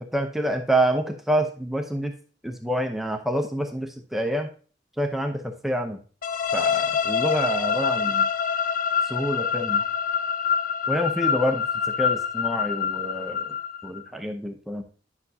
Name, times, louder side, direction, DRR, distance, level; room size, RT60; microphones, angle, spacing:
voice 1, 0.0-2.1 2.4-4.5 5.0-6.0 6.5-8.3 9.0-9.8 10.9-11.7 12.0-13.5 13.8-14.8, equal, ahead, 4 dB, 0.6 m, -27 dB
sound 1, 6.2-14.0, left 7 dB, 50° left, 0.5 m, -25 dB
10.0 x 5.9 x 2.7 m, 0.39 s
head